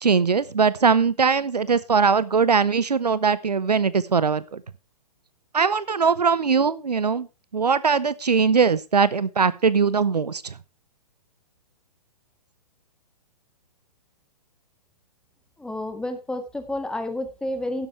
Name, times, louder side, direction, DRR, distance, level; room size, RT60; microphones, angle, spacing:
voice 1, 0.0-4.6 5.5-7.3 7.5-10.5, right 5 dB, 75° right, 18 dB, 0.8 m, -21 dB
voice 2, 15.6-17.9, left 1 dB, 5° left, 7 dB, 1.7 m, -30 dB
12.0 x 10.5 x 3.2 m, 0.32 s
figure-of-eight pair, 120°, 21 cm